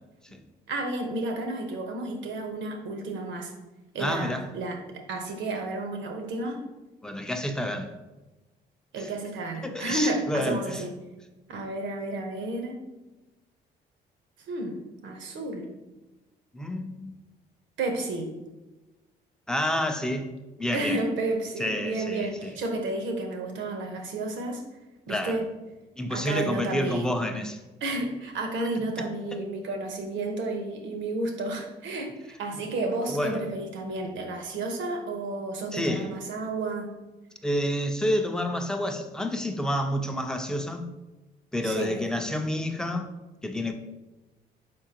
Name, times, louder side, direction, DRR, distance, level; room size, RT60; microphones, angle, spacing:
voice 1, 0.7-3.5 3.9-6.6 8.9-10.9 11.5-12.7 14.5-14.8 15.0-15.7 17.8-18.3 20.7-24.6 25.1-25.5 26.1-27.1 27.8-37.0 41.6-42.0, right 2 dB, 75° right, 4 dB, 0.8 m, -31 dB
voice 2, 4.0-4.4 7.0-8.0 9.0-9.1 9.6-10.8 16.5-17.1 19.5-20.3 20.6-21.0 21.6-22.6 25.1-25.4 26.0-27.6 29.0-29.1 29.3-29.4 33.1-33.4 35.7-36.1 37.4-40.9 41.5-43.1 43.4-43.7, left 1 dB, 5° left, 6 dB, 0.5 m, -29 dB
4.3 x 3.7 x 2.8 m, 1.1 s
supercardioid pair, 75°, 19 cm